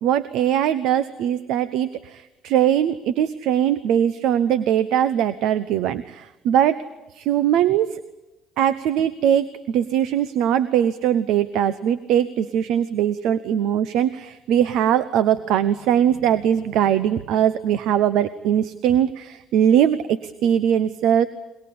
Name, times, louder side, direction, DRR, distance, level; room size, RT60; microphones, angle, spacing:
voice 1, 0.0-6.8 7.1-8.0 8.6-21.3, right 10 dB, 75° right, 14 dB, 0.9 m, -21 dB
22.0 x 22.0 x 8.7 m, 1.0 s
supercardioid pair, 70°, 0 cm